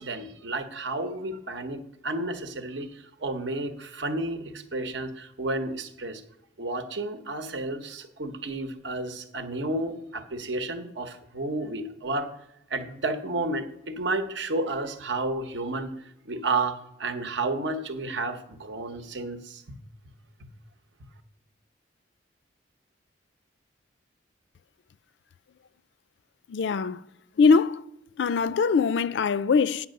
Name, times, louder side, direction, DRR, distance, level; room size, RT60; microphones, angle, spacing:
voice 1, 0.0-6.2 6.6-12.3 12.7-15.9 16.3-19.8 20.4-20.5, right 2 dB, 70° right, 1.0 m, -31 dB
voice 2, 26.5-27.0 27.4-27.8 28.2-29.9, left 5 dB, 65° left, 0.4 m, -22 dB
9.5 x 6.0 x 6.5 m
head